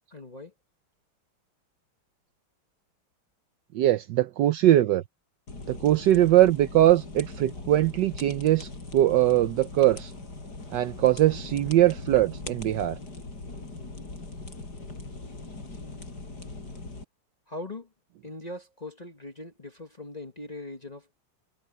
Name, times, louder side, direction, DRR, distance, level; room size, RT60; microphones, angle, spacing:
voice 1, 0.1-0.5 17.5-17.9 18.2-21.1, left 2 dB, 25° left, 1.1 m, -40 dB
voice 2, 3.7-5.0 5.7-10.1 10.7-13.0, right 13 dB, 70° right, 1.1 m, -21 dB
sound 1, 5.5-17.0, left 3 dB, 50° left, 5.4 m, -40 dB
omnidirectional pair, 2.2 m